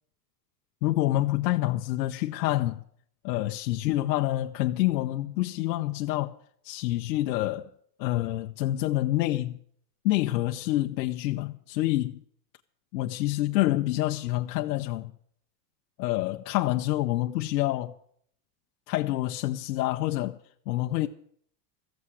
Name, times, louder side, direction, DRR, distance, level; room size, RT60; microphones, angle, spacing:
voice 1, 0.8-2.8 3.2-6.4 6.6-7.7 8.0-9.6 10.0-12.2 12.9-15.1 16.0-17.9 18.9-20.4 20.7-21.1, left 16 dB, 90° left, 0.8 m, -27 dB
14.5 x 7.9 x 9.6 m
supercardioid pair, 165°, 50 cm